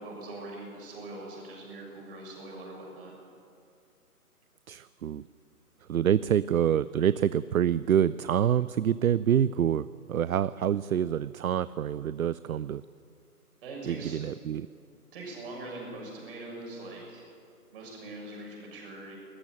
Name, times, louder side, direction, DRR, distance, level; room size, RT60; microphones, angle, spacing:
voice 1, 0.0-3.2 13.6-14.2 15.1-17.2 17.7-19.2, right 2 dB, 35° right, -1 dB, 6.8 m, -42 dB
voice 2, 4.7-5.2 5.9-12.8 13.9-14.7, right 9 dB, 65° right, 17 dB, 0.5 m, -26 dB
19.0 x 14.0 x 9.7 m, 2.4 s
figure-of-eight pair, 145°, 46 cm